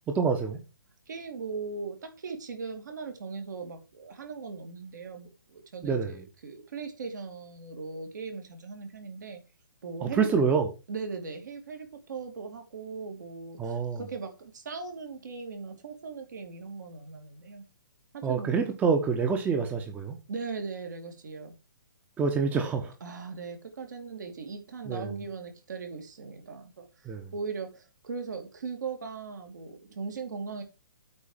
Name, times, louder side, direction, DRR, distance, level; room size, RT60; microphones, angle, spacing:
voice 1, 0.1-0.6 5.8-6.2 10.0-10.7 13.6-14.0 18.2-20.2 22.2-22.9 24.9-25.1 27.0-27.3, right 5 dB, 15° right, 1.2 m, -27 dB
voice 2, 1.1-9.4 9.8-10.3 10.9-17.6 18.1-18.6 20.3-21.5 23.0-30.6, right 4 dB, 60° right, 2.8 m, -39 dB
8.5 x 4.7 x 7.3 m
figure-of-eight pair, 125°, 11 cm